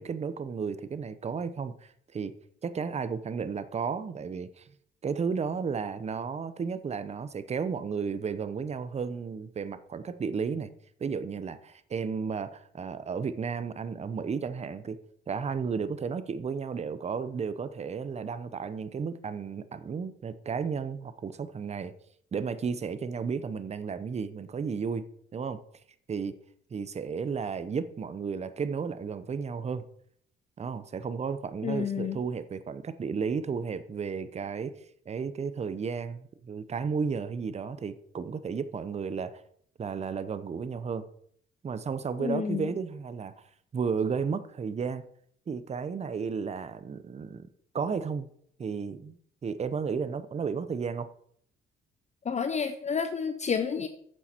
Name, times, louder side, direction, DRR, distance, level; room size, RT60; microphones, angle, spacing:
voice 1, 0.0-2.3 2.6-4.7 5.0-10.7 11.0-15.0 15.3-21.9 22.3-25.1 25.3-25.6 26.1-26.4 26.7-29.8 30.6-34.7 35.1-39.4 39.8-41.1 41.6-43.3 43.7-45.0 45.5-47.5 47.7-48.3 48.6-51.1, right 5 dB, 35° right, 0.7 m, -33 dB
voice 2, 31.6-32.2 42.2-42.7 52.2-53.9, left 6 dB, 35° left, 0.7 m, -30 dB
9.2 x 7.1 x 4.4 m
cardioid pair, 90°, 20 cm